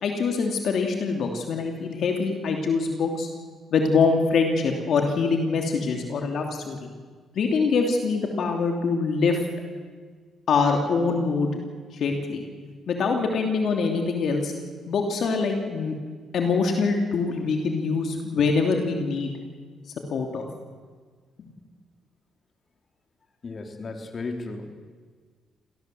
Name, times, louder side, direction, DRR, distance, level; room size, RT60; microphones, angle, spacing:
voice 1, 0.0-3.3 3.7-6.9 7.3-9.4 10.5-11.5 11.9-12.4 12.9-14.5 14.9-15.9 16.3-19.3 20.1-20.5 21.4-21.5, left 4 dB, 65° left, 3 dB, 2.9 m, -24 dB
voice 2, 23.4-24.6, left 3 dB, 40° left, 4 dB, 3.5 m, -34 dB
27.0 x 17.5 x 7.9 m, 1.6 s
cardioid pair, 90°, 0 cm